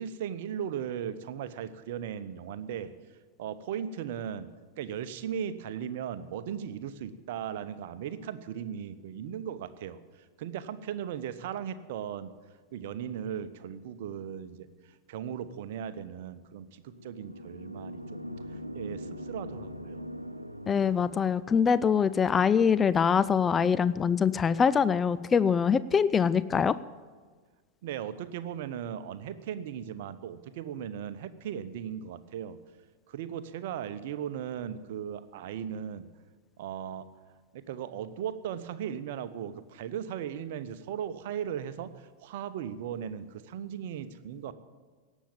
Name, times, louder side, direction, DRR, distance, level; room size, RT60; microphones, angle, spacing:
voice 1, 0.0-2.9 3.4-4.5 4.8-12.3 12.7-18.2 18.5-20.1 27.8-32.6 33.1-36.1 36.6-37.1 37.5-44.5, right 9 dB, 55° right, 13 dB, 0.9 m, -37 dB
sound 1, 16.9-21.8, equal, 90° right, 0.7 m, -42 dB
voice 2, 20.7-26.8, left 6 dB, 20° left, 17 dB, 0.4 m, -24 dB
17.5 x 7.2 x 8.9 m, 1.5 s
figure-of-eight pair, 90°, 0 cm